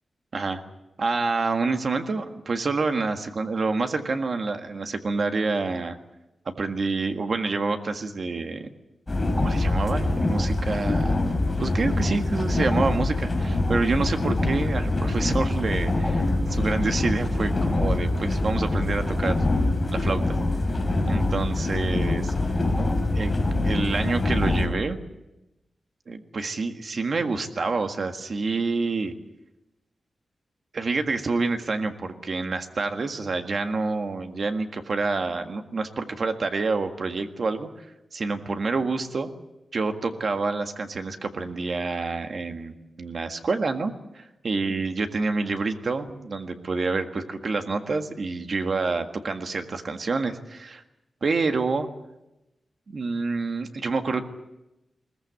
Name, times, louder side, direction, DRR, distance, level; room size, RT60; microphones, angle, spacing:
voice 1, 1.0-6.0 6.4-8.7 9.1-11.2 11.6-19.4 19.9-20.3 21.1-22.3 23.1-23.3 23.6-25.0 26.1-29.1 30.7-37.7 38.1-39.3 39.7-42.7 43.0-50.8 51.2-51.9 52.9-54.2, right 3 dB, 45° right, 6 dB, 1.7 m, -27 dB
sound 1, 9.1-24.7, left 2 dB, 15° left, 3.5 m, -24 dB
21.5 x 19.0 x 8.3 m, 0.94 s
wide cardioid pair, 170°, 0 cm